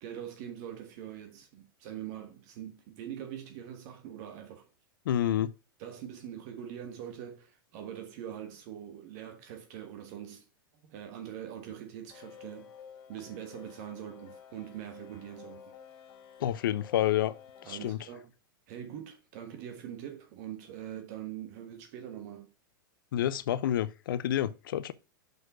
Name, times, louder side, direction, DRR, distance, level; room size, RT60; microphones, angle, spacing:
voice 1, 0.0-4.7 5.8-10.4 10.8-12.7 13.1-15.7 17.6-18.3 18.7-22.5, right 10 dB, 55° right, 1.4 m, -43 dB
voice 2, 5.1-5.5 16.4-17.3 17.7-18.0 23.1-24.9, left 11 dB, 75° left, 0.6 m, -28 dB
sound 1, 12.1-17.9, left 7 dB, 45° left, 1.8 m, -52 dB
6.5 x 4.7 x 6.0 m
hypercardioid pair, 120°, 11 cm